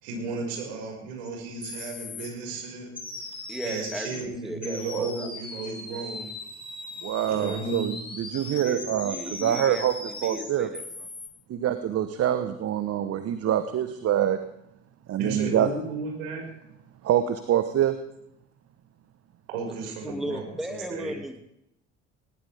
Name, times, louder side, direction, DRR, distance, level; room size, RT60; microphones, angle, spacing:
voice 1, 0.0-2.9 3.6-6.3 7.3-7.9 15.2-16.4 19.5-21.1, right 3 dB, 70° right, 1 dB, 5.8 m, -34 dB
sound 1, 1.2-1.3 1.6-2.3 3.0-4.2 4.6-11.3, left 3 dB, 15° left, 4.3 m, -39 dB
voice 2, 3.5-5.3 8.4-11.0 19.7-19.8 20.0-21.4, equal, ahead, 5 dB, 2.4 m, -36 dB
voice 3, 7.0-9.9 10.2-10.7 11.5-14.4 15.1-15.7 17.0-18.0, right 10 dB, 45° right, 9 dB, 1.2 m, -25 dB
20.5 x 18.5 x 3.6 m, 0.80 s
figure-of-eight pair, 55°, 33 cm